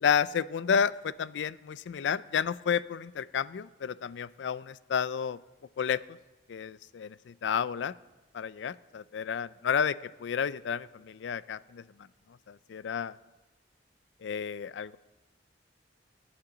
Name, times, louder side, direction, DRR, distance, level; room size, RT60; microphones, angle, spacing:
voice 1, 0.0-5.4 5.8-6.2 6.5-7.9 8.3-11.8 12.5-13.1 14.2-15.0, left 7 dB, 85° left, 18 dB, 0.4 m, -31 dB
24.0 x 8.9 x 3.9 m, 1.1 s
head